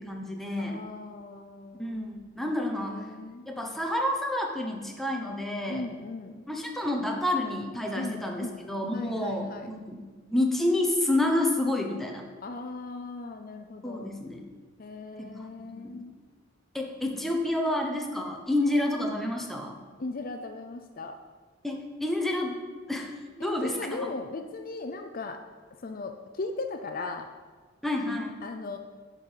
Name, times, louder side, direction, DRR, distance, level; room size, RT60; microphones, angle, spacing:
voice 1, 0.0-0.8 1.8-3.1 3.5-5.8 6.5-10.0 10.3-12.3 13.8-14.5 15.2-16.0 16.7-19.8 21.6-22.6 22.9-24.1 27.8-28.3, left 1 dB, ahead, 1 dB, 1.0 m, -29 dB
voice 2, 0.6-2.1 2.7-3.5 5.7-6.5 7.9-8.6 8.9-9.7 12.4-14.2 14.8-16.1 20.0-21.2 23.4-25.4 25.8-27.3 28.4-28.8, left 3 dB, 45° left, 6 dB, 0.5 m, -38 dB
9.9 x 5.3 x 5.7 m, 1.4 s
head